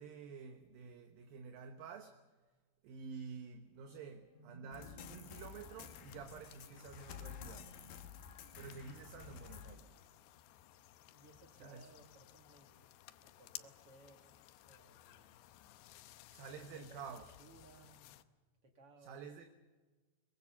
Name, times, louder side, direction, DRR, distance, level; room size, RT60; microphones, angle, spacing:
voice 1, 0.0-2.2 2.8-7.7 8.6-9.9 11.6-11.9 16.3-17.3 19.0-19.5, right 5 dB, 70° right, 2.7 m, -50 dB
sound 1, 3.9-7.5, right 2 dB, 20° left, 3.7 m, -63 dB
sound 2, 4.7-9.8, left 8 dB, 65° left, 2.9 m, -52 dB
sound 3, 5.2-18.2, left 14 dB, 85° left, 3.0 m, -59 dB
voice 2, 11.1-12.9 13.2-15.4 16.5-17.0 17.4-18.2 18.6-19.2, right 2 dB, 45° right, 2.4 m, -63 dB
23.0 x 23.0 x 7.1 m
omnidirectional pair, 4.8 m